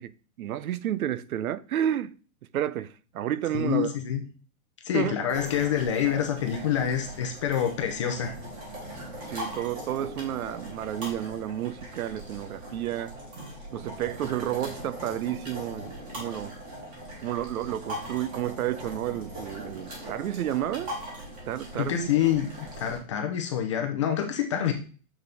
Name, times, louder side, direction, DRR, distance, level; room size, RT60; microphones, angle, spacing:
voice 1, 0.0-2.2 2.5-3.9 4.9-5.2 9.3-13.1 13.7-16.5 17.2-20.9 21.5-22.1, right 11 dB, 85° right, 0.7 m, -31 dB
voice 2, 3.5-4.2 4.8-8.3 21.7-24.7, left 9 dB, 20° left, 0.6 m, -27 dB
sound 1, 5.3-23.0, equal, 20° right, 2.5 m, -40 dB
7.3 x 6.4 x 3.4 m
hypercardioid pair, 170°, 42 cm